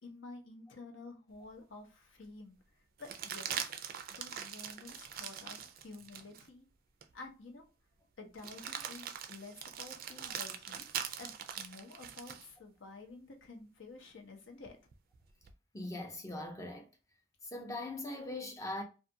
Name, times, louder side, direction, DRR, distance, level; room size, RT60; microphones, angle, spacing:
voice 1, 0.0-3.7 4.1-6.7 7.1-7.7 8.2-14.8, left 3 dB, 80° left, 0.7 m, -51 dB
sound 1, 1.4-1.5 3.0-6.5 7.0-7.1 8.4-12.5 14.7-15.5, right 8 dB, 50° right, 0.3 m, -42 dB
voice 2, 15.7-16.9 17.4-18.8, left 2 dB, 15° left, 0.5 m, -41 dB
2.5 x 2.3 x 2.6 m
head